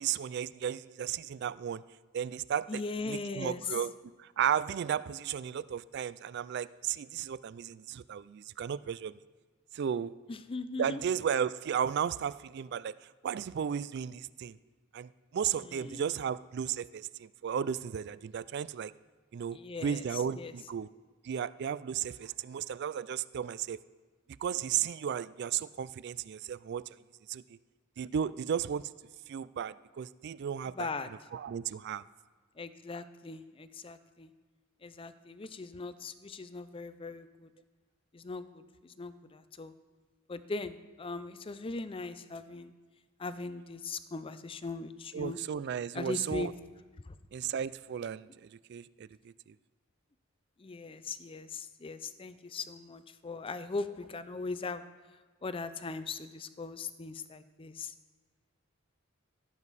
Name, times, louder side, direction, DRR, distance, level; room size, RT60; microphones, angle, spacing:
voice 1, 0.0-1.8 2.1-2.8 3.1-3.9 4.2-9.2 9.7-10.1 10.8-12.9 13.2-14.6 14.9-18.9 19.3-20.9 21.2-23.8 24.4-26.8 27.3-27.6 28.0-28.9 29.3-30.9 31.3-32.0 45.1-46.5 47.3-49.3, right 8 dB, 55° right, 18 dB, 0.3 m, -34 dB
voice 2, 2.7-3.6 10.3-11.0 15.6-16.0 19.5-20.5 30.6-31.1 32.6-34.3 34.8-37.5 38.1-39.7 40.3-42.7 43.2-45.4 45.9-46.5 47.1-47.2 50.6-54.8 55.4-57.9, left 3 dB, 25° left, 13 dB, 0.5 m, -40 dB
15.5 x 7.3 x 4.1 m, 1.4 s
head